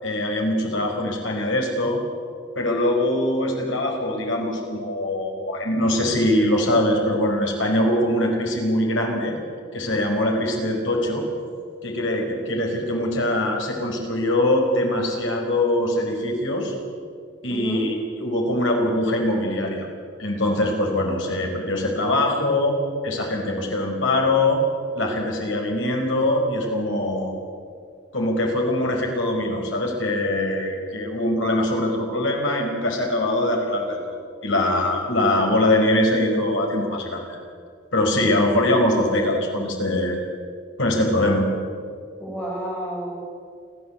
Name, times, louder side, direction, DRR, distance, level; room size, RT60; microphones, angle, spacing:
voice 1, 0.0-2.0 2.5-9.4 9.7-11.2 11.8-16.7 17.4-19.9 20.2-22.7 23.0-24.6 24.9-27.4 28.1-34.1 34.4-37.4 37.9-40.2 40.8-41.5, left 1 dB, 85° left, 1 dB, 5.0 m, -22 dB
voice 2, 17.5-17.8 42.2-43.2, right 1 dB, 5° left, -5 dB, 7.2 m, -31 dB
29.5 x 12.5 x 8.1 m, 2.2 s
head